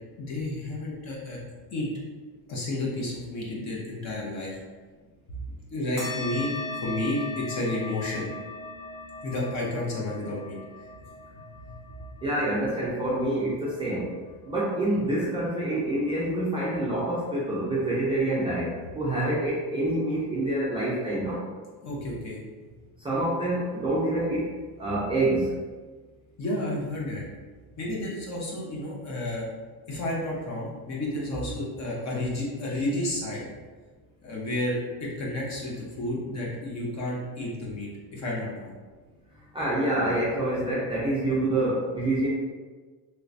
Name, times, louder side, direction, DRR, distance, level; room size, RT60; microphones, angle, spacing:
voice 1, 0.2-1.4 1.7-1.9 2.5-4.6 5.3-5.4 5.7-6.5 6.8-8.3 9.2-10.9 11.3-11.7 21.8-22.4 26.4-27.2 27.8-29.5 29.9-33.5 34.2-38.7, left 1 dB, 40° left, -4 dB, 0.9 m, -31 dB
sound 1, 6.0-14.9, left 2 dB, 70° left, 1.4 m, -39 dB
voice 2, 12.2-14.1 14.4-21.4 23.0-24.5 24.8-25.5 39.5-42.3, right 1 dB, 15° right, -9 dB, 0.4 m, -27 dB
3.2 x 3.0 x 2.5 m, 1.4 s
cardioid pair, 150°, 42 cm